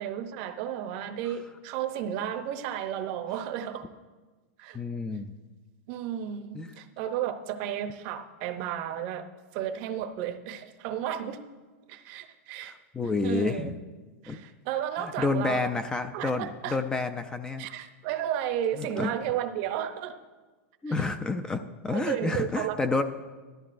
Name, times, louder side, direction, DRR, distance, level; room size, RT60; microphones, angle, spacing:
voice 1, 0.0-3.8 4.6-4.8 5.9-9.3 9.5-11.4 11.9-12.7 13.2-13.7 14.2-15.7 16.1-16.8 17.6-20.1 20.9-21.0 21.9-22.8, right 10 dB, 45° right, 8 dB, 0.7 m, -33 dB
voice 2, 4.7-5.3 6.5-6.7 12.6-13.8 14.3-14.4 15.0-17.7 18.8-19.1 20.8-23.0, left 3 dB, 10° left, 8 dB, 0.3 m, -29 dB
14.0 x 12.5 x 2.5 m, 1.3 s
supercardioid pair, 150°, 7 cm